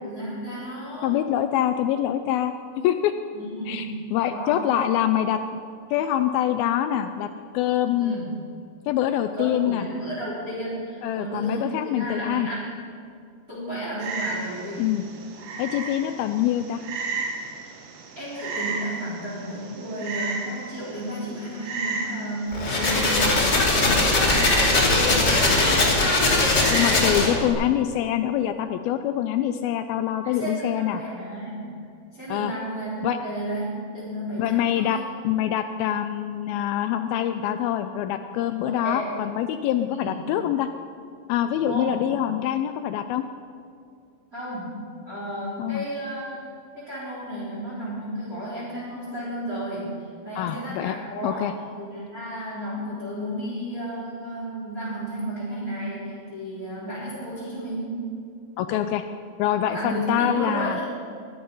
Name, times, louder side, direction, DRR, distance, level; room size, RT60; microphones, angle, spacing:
voice 1, 0.0-1.1 3.3-3.9 4.2-4.6 8.0-8.3 9.3-12.9 13.5-14.9 18.2-25.7 30.2-31.8 32.1-35.0 38.6-39.0 40.0-40.2 41.7-42.0 44.3-44.8 45.0-46.5 46.7-49.9 50.2-58.1 59.7-60.8, right 1 dB, 20° right, -7 dB, 4.0 m, -33 dB
voice 2, 1.0-2.5 2.8-3.1 3.7-5.6 5.9-7.3 7.5-8.2 8.9-9.9 11.0-12.5 14.8-15.0 15.6-16.8 26.7-31.0 32.3-32.5 33.0-33.2 34.4-40.7 41.3-43.3 45.6-45.8 50.4-51.0 51.2-51.5 58.6-59.1 59.4-60.8, left 11 dB, 80° left, 9 dB, 2.2 m, -25 dB
Frog, 14.0-27.0, right 4 dB, 65° right, 2.8 m, -34 dB
sound 1, 22.5-27.5, left 2 dB, 30° left, 2.6 m, -20 dB
22.0 x 9.6 x 5.4 m, 2.3 s
omnidirectional pair, 4.6 m